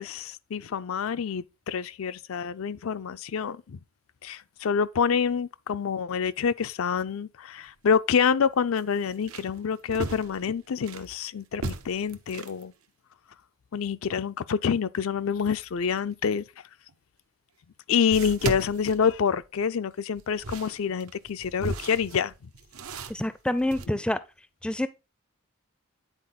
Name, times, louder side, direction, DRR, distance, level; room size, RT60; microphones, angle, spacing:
voice 1, 0.0-3.8 4.2-12.7 13.7-16.4 17.9-22.3 23.9-24.0, left 6 dB, 70° left, 0.4 m, -27 dB
sound 1, 7.6-7.7 8.1-8.2 8.8-11.1 11.5-12.6 16.9-17.0 18.1-19.7 20.2-23.9, right 3 dB, 85° right, 0.8 m, -37 dB
voice 2, 23.1-24.2 24.6-24.9, left 1 dB, 5° left, 0.4 m, -27 dB
9.9 x 4.2 x 3.9 m
head